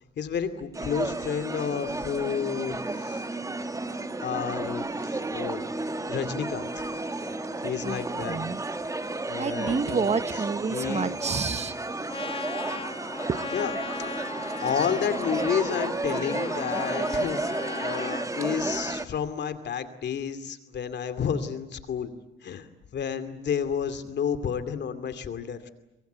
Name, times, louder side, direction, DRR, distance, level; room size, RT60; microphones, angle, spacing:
voice 1, 0.2-3.2 4.2-5.7 6.1-6.8 7.6-8.5 9.3-10.1 10.7-11.1 13.5-13.7 14.4-22.1 22.4-22.7 22.9-25.7, left 7 dB, 60° left, 10 dB, 2.5 m, -31 dB
sound 1, 0.7-19.1, right 2 dB, 15° right, 1.4 m, -32 dB
voice 2, 7.8-8.6 9.3-11.7 13.3-13.4, right 5 dB, 35° right, 13 dB, 1.1 m, -29 dB
Trumpet, 12.1-18.3, left 4 dB, 25° left, 1.0 m, -37 dB
23.5 x 23.0 x 9.3 m, 0.96 s
cardioid pair, 90°, 20 cm